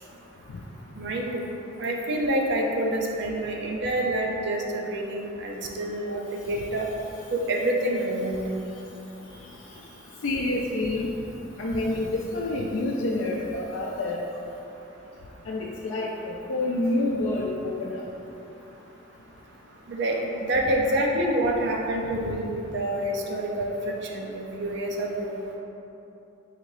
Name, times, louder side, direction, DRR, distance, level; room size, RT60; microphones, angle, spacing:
voice 1, 1.0-1.4 1.8-6.2 6.5-6.9 7.3-8.6 19.9-25.3, right 1 dB, 60° right, 0 dB, 0.5 m, -27 dB
voice 2, 10.2-11.1 11.6-14.2 15.5-18.0, left 2 dB, 80° left, -3 dB, 0.4 m, -28 dB
4.0 x 2.7 x 4.8 m, 3.0 s
head